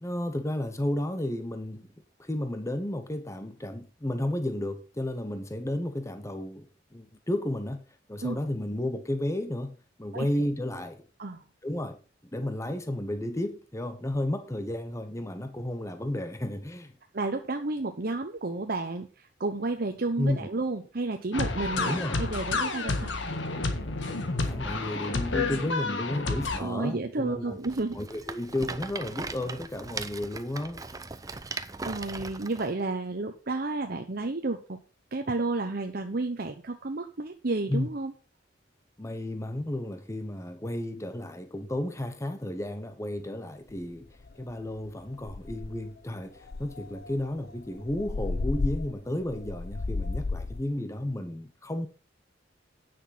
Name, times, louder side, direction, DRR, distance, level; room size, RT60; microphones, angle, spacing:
voice 1, 0.0-1.9 2.2-7.8 8.1-11.0 11.6-12.0 12.3-16.9 20.2-20.5 21.8-22.2 24.2-27.6 27.9-30.8 37.7-37.9 39.0-44.1 44.4-51.9, left 1 dB, 15° left, 0.9 m, -32 dB
voice 2, 17.1-23.1 26.6-28.0 31.8-34.8 35.1-38.1, right 2 dB, 55° right, 1.0 m, -31 dB
sound 1, 21.3-26.6, left 3 dB, 80° left, 1.7 m, -30 dB
Rattle, 27.6-32.7, right 3 dB, 20° right, 0.6 m, -39 dB
sound 2, 43.8-43.9 44.3-44.5 44.8-44.9 45.2-45.9 46.5-50.6, left 3 dB, 55° left, 0.7 m, -33 dB
9.8 x 6.3 x 5.8 m
head